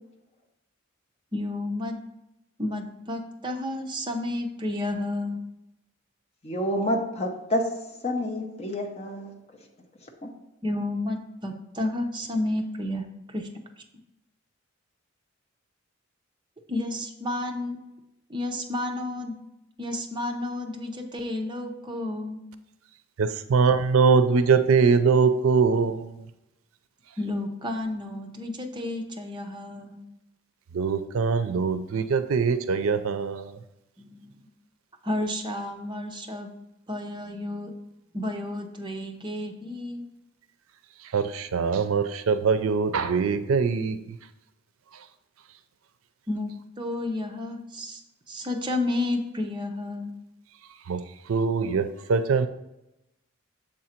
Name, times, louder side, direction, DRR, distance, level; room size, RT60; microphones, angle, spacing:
voice 1, 1.3-2.0 2.6-5.4 10.6-13.5 16.7-17.8 18.3-19.4 19.8-22.4 27.2-30.0 34.0-34.4 35.0-36.5 36.9-37.7 38.1-40.0 46.3-48.0 48.3-50.2, left 1 dB, 25° right, 3 dB, 0.7 m, -31 dB
voice 2, 6.4-7.7 8.0-9.3 10.2-10.3, equal, 30° left, 3 dB, 0.8 m, -28 dB
voice 3, 23.2-26.2 30.7-33.6 41.1-44.2 50.9-51.0 51.3-52.5, right 5 dB, 75° right, 11 dB, 0.5 m, -22 dB
7.3 x 3.8 x 4.4 m, 0.90 s
head